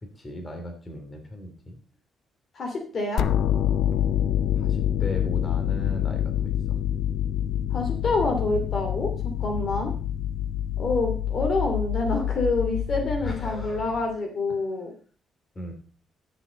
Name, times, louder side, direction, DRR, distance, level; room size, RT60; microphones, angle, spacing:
voice 1, 0.0-1.8 4.6-6.8 9.9-10.1 13.2-13.8 15.5-15.7, equal, 25° left, 5 dB, 2.9 m, -38 dB
voice 2, 2.5-3.3 7.7-9.9 10.8-14.9, left 2 dB, 50° left, 3 dB, 2.7 m, -27 dB
sound 1, 3.2-14.1, left 10 dB, 70° left, 0.5 m, -27 dB
11.5 x 7.1 x 5.2 m, 0.39 s
cardioid pair, 90°, 0 cm